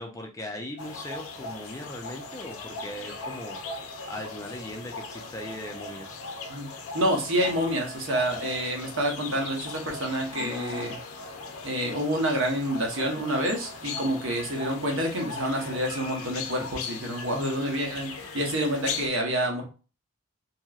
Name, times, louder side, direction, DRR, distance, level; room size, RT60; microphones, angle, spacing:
voice 1, 0.0-3.6 4.1-6.2, left 1 dB, 15° left, 3 dB, 0.4 m, -39 dB
sound 1, 0.8-19.1, left 4 dB, 85° left, 0.5 m, -38 dB
voice 2, 6.9-11.0 11.6-19.6, equal, 65° right, 1 dB, 0.9 m, -28 dB
3.0 x 2.9 x 2.3 m, 0.35 s
head